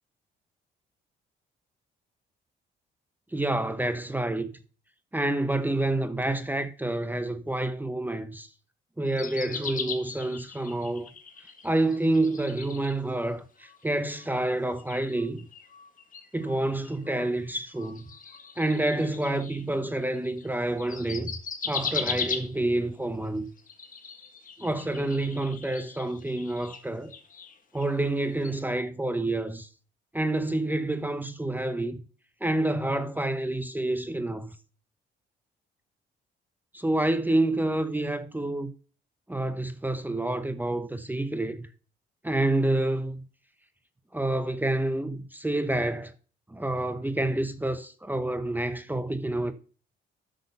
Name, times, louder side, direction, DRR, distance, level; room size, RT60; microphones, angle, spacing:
voice 1, 3.3-4.6 5.1-8.5 9.0-11.1 11.6-15.5 16.3-18.1 18.6-21.4 21.7-23.5 24.6-27.1 27.7-29.7 30.1-32.0 32.4-34.5 36.7-38.7 39.3-41.7 42.2-43.2 44.1-46.1 46.5-49.5, right 2 dB, 10° right, 0.8 m, -28 dB
sound 1, 9.1-13.3 13.6-20.5 20.8-22.8 23.5-28.1 28.4-28.6, left 5 dB, 40° left, 1.7 m, -39 dB
8.1 x 6.5 x 5.4 m
cardioid pair, 90°, 20 cm